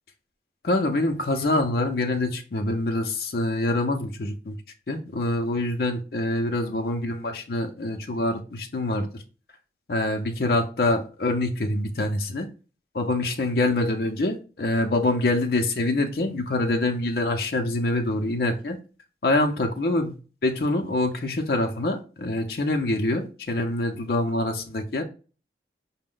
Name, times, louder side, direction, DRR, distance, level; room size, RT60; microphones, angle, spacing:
voice 1, 0.6-4.6 4.9-9.2 9.9-12.5 12.9-18.8 19.2-20.1 20.4-25.0, left 2 dB, 55° left, 0.5 m, -25 dB
5.0 x 2.1 x 3.6 m
head